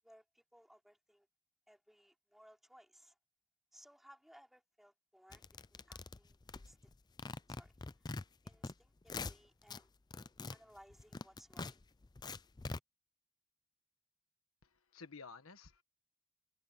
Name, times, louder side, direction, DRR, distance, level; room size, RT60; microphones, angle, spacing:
voice 1, 0.0-1.3 1.7-3.2 3.7-6.8 7.5-7.7 8.0-8.1 8.4-9.9 10.5-11.8, equal, ahead, 4.1 m, -63 dB
sound 1, 5.3-6.9 7.2-8.7 9.0-9.8 10.1-12.8, left 3 dB, 20° left, 0.4 m, -44 dB
voice 2, 14.6-15.8, left 4 dB, 80° left, 1.4 m, -53 dB
head